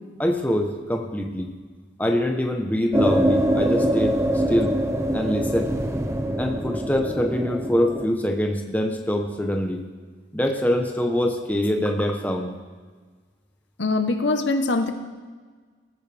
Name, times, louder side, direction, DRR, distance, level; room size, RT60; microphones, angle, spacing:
voice 1, 0.2-1.5 2.0-4.8 5.1-5.7 6.4-9.9 10.3-12.6, left 1 dB, 10° left, 3 dB, 0.9 m, -24 dB
sound 1, 2.9-8.1, equal, 15° right, 0.6 m, -24 dB
voice 2, 13.8-14.9, left 3 dB, 70° left, 7 dB, 1.1 m, -22 dB
20.0 x 13.5 x 3.5 m, 1.5 s
head